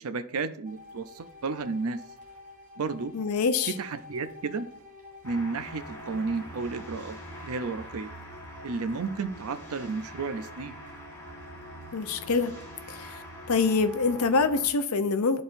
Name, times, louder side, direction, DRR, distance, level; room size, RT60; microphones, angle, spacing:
voice 1, 0.0-2.0 2.8-3.1 3.8-4.7 5.2-7.2 7.4-8.1 8.6-10.7, right 4 dB, 80° right, 0.6 m, -32 dB
sound 1, 0.6-14.4, left 1 dB, 40° right, 2.7 m, -50 dB
voice 2, 3.1-3.7 11.9-12.5 12.9-13.2 13.5-15.4, left 4 dB, 80° left, 0.6 m, -25 dB
sound 2, 5.2-14.7, equal, 15° left, 1.7 m, -44 dB
11.5 x 4.2 x 2.6 m
head